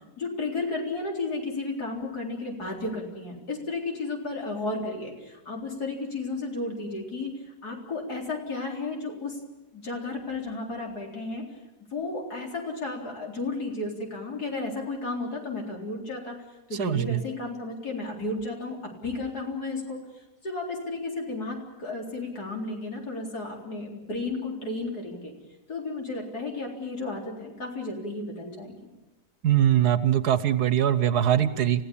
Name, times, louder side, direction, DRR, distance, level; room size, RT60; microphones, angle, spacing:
voice 1, 0.2-9.4 9.7-11.6 11.9-25.3 25.7-28.8, left 3 dB, 70° left, 0 dB, 4.5 m, -33 dB
voice 2, 16.8-17.2 29.4-31.8, right 10 dB, 70° right, 13 dB, 1.5 m, -22 dB
30.0 x 16.0 x 7.2 m, 1.0 s
omnidirectional pair, 1.8 m